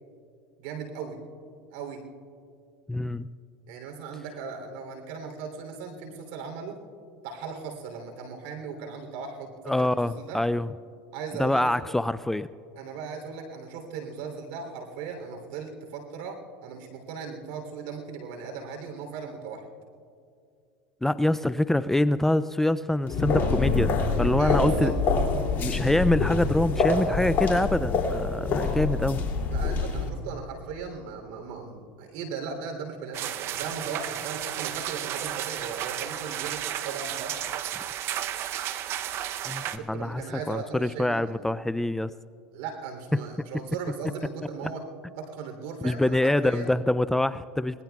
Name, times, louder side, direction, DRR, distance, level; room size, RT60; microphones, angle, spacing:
voice 1, 0.6-1.2 1.7-2.1 3.7-6.8 7.2-10.4 11.1-11.7 12.8-19.6 24.4-25.0 29.5-37.4 39.7-41.4 42.5-44.9 45.1-46.7, right 5 dB, 75° right, 4 dB, 3.2 m, -37 dB
voice 2, 2.9-3.3 9.7-10.7 11.4-12.5 21.0-24.9 25.6-29.2 39.5-42.1 43.1-43.2 45.8-47.8, left 1 dB, 5° left, 14 dB, 0.3 m, -25 dB
sound 1, 23.1-30.1, left 4 dB, 40° left, 2.7 m, -26 dB
sound 2, 33.1-39.8, right 11 dB, 50° right, 0.7 m, -33 dB
25.0 x 20.0 x 2.4 m, 2.3 s
supercardioid pair, 105°, 5 cm